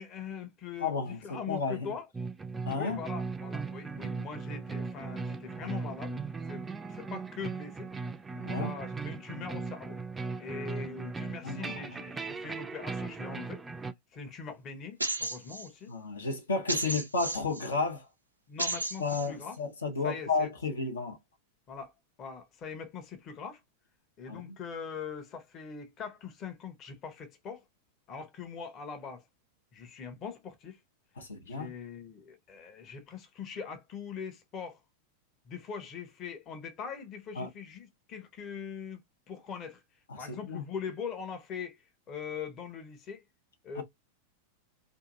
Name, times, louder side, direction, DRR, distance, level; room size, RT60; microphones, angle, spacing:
voice 1, 0.0-2.1 2.7-6.1 6.5-7.9 8.5-10.0 10.4-13.6 14.1-15.9 18.5-19.6 20.0-20.5 21.7-21.9 22.2-23.6 24.2-27.6 28.1-29.2 29.7-30.8 31.4-34.8 35.5-39.0 39.3-39.8 40.2-43.2 43.6-43.8, left 6 dB, 30° left, 0.7 m, -42 dB
voice 2, 0.8-1.9 2.7-3.0 8.4-8.7 11.4-11.9 15.9-18.0 19.0-21.2 24.3-24.5 31.2-31.7 37.4-37.5 40.1-40.6 43.8-43.9, left 4 dB, 70° left, 0.7 m, -32 dB
sound 1, 2.1-13.9, right 4 dB, 15° right, 0.4 m, -38 dB
sound 2, 15.0-15.7 16.7-17.7 18.6-19.3, right 2 dB, 80° right, 0.4 m, -33 dB
2.7 x 2.5 x 2.4 m
figure-of-eight pair, 90°, 0 cm